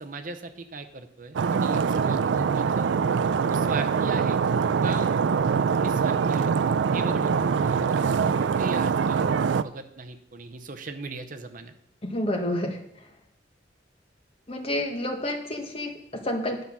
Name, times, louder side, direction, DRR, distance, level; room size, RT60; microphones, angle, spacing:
voice 1, 0.0-2.9 3.5-4.4 4.8-5.1 5.7-6.5 6.9-11.7, right 3 dB, 45° right, 7 dB, 0.7 m, -38 dB
Stream, 1.4-9.6, right 6 dB, 75° right, 0.4 m, -24 dB
voice 2, 12.0-12.8 14.5-16.6, left 1 dB, 30° left, 3 dB, 1.2 m, -29 dB
10.5 x 5.6 x 6.0 m, 0.74 s
head